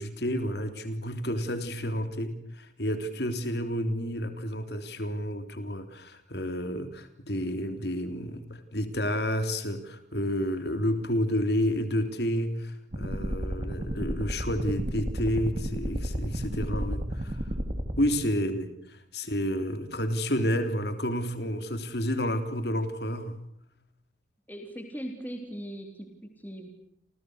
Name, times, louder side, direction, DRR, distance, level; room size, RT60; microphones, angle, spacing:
voice 1, 0.0-17.4 18.0-23.4, equal, 55° left, 9 dB, 3.6 m, -30 dB
sound 1, 12.9-18.0, equal, 40° right, 3.8 m, -32 dB
voice 2, 24.5-26.7, equal, 10° left, 4 dB, 3.7 m, -39 dB
30.0 x 28.0 x 6.6 m, 0.70 s
head